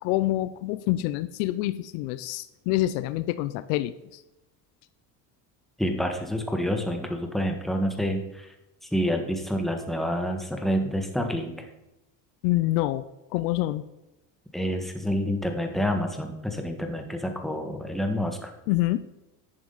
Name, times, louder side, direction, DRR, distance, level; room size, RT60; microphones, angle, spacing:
voice 1, 0.0-4.2 12.4-13.1 13.3-13.8 18.7-19.1, left 16 dB, 70° left, 13 dB, 0.7 m, -26 dB
voice 2, 5.8-8.5 8.9-11.6 14.5-18.5, equal, ahead, 3 dB, 1.6 m, -28 dB
10.5 x 6.9 x 4.0 m, 0.93 s
hypercardioid pair, 80°, 49 cm